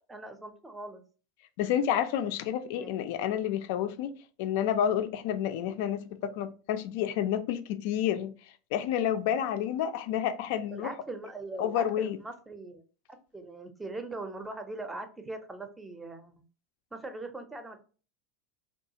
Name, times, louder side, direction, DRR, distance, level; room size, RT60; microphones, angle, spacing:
voice 1, 0.1-1.0 2.7-3.0 10.7-12.8 13.3-16.3 16.9-17.8, right 2 dB, 15° right, 0.5 m, -41 dB
voice 2, 1.6-10.9 11.6-12.2, left 10 dB, 65° left, 0.3 m, -30 dB
2.3 x 2.3 x 2.7 m
hypercardioid pair, 95°, 0 cm